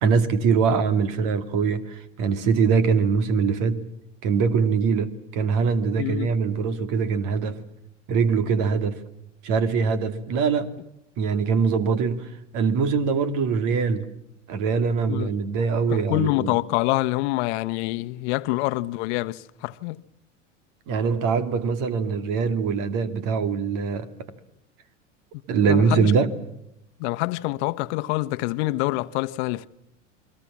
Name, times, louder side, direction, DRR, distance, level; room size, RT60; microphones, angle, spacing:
voice 1, 0.0-3.8 4.2-7.6 8.1-9.0 9.4-10.7 11.2-14.1 14.5-16.6 20.9-24.1 25.5-26.3, right 5 dB, 55° right, 2.5 m, -23 dB
voice 2, 6.0-6.3 15.1-15.3 15.9-20.0 25.7-26.1 27.0-29.7, left 20 dB, 60° left, 1.1 m, -26 dB
29.0 x 22.0 x 7.4 m
hypercardioid pair, 90°, 38 cm